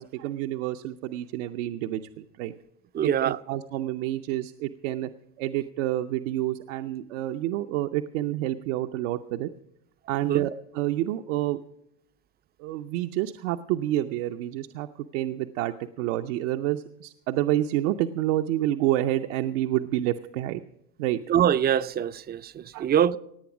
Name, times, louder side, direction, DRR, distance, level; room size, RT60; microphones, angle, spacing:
voice 1, 0.0-2.5 3.0-5.1 5.4-9.5 10.1-11.6 12.6-14.9 15.1-20.6 21.0-21.2 22.7-22.9, right 14 dB, 75° right, 0.7 m, -28 dB
voice 2, 2.9-3.4 10.3-10.5 21.3-23.2, right 9 dB, 25° right, 0.4 m, -24 dB
18.0 x 8.5 x 6.0 m
supercardioid pair, 105°, 38 cm